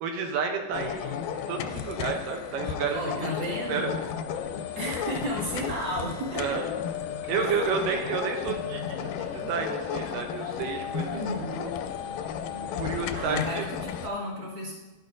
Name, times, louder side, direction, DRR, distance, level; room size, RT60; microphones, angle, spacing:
voice 1, 0.0-3.9 6.4-6.7 7.3-11.2 11.5-11.7 12.6-13.7, right 5 dB, 80° right, 3 dB, 2.3 m, -31 dB
sound 1, 0.7-14.1, left 8 dB, 80° left, 2.0 m, -33 dB
voice 2, 2.9-4.0 4.8-6.6 7.4-7.8 11.1-11.6 13.1-14.7, equal, 40° right, -5 dB, 2.2 m, -33 dB
11.5 x 8.2 x 2.6 m, 1.2 s
omnidirectional pair, 4.1 m